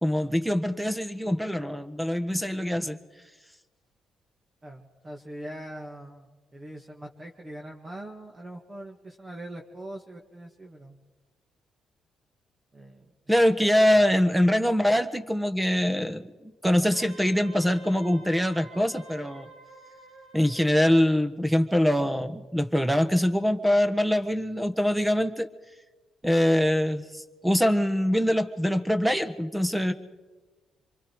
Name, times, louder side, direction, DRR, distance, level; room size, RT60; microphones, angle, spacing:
voice 1, 0.0-3.0 13.3-19.5 20.3-25.5 26.2-29.9, equal, 5° right, 10 dB, 1.3 m, -24 dB
voice 2, 4.6-11.0 12.7-13.1 13.6-13.7 13.9-14.0, right 1 dB, 25° right, 1 dB, 2.2 m, -42 dB
Wind instrument woodwind instrument, 16.9-21.1, right 3 dB, 85° right, 6.3 m, -50 dB
26.0 x 23.5 x 4.8 m, 1.2 s
cardioid pair, 90°, 0 cm